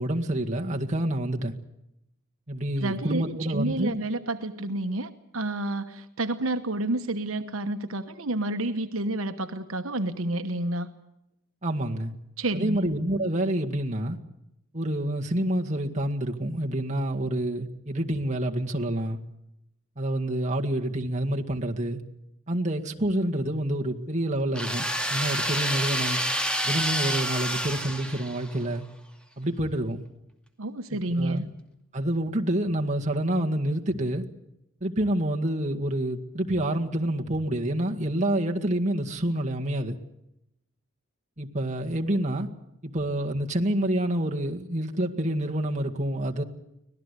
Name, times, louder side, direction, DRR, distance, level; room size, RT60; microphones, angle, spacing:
voice 1, 0.0-1.6 2.5-4.0 11.6-12.1 12.5-14.2 14.7-19.2 20.0-22.0 22.5-26.2 26.6-28.8 29.4-30.0 30.9-31.5 31.9-34.3 34.8-40.0 41.4-42.5 42.8-46.4, right 1 dB, 35° right, 1.9 m, -28 dB
voice 2, 2.8-10.9 12.4-12.8 30.6-31.4, right 2 dB, 70° right, 1.2 m, -29 dB
sound 1, 24.5-28.6, equal, 5° left, 2.4 m, -28 dB
25.0 x 18.5 x 8.3 m
head